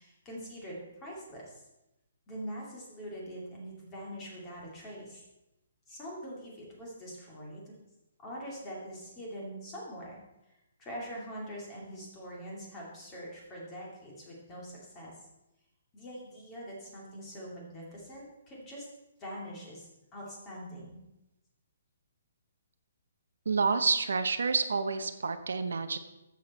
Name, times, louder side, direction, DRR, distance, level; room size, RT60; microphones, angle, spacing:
voice 1, 0.0-1.7 2.3-5.2 5.9-7.7 8.2-10.2 10.5-15.1 15.9-18.9 19.2-21.0, equal, 15° left, -4 dB, 2.5 m, -43 dB
voice 2, 23.4-26.0, right 4 dB, 90° right, 8 dB, 1.0 m, -28 dB
12.5 x 7.4 x 4.3 m, 0.95 s
hypercardioid pair, 175°, 0 cm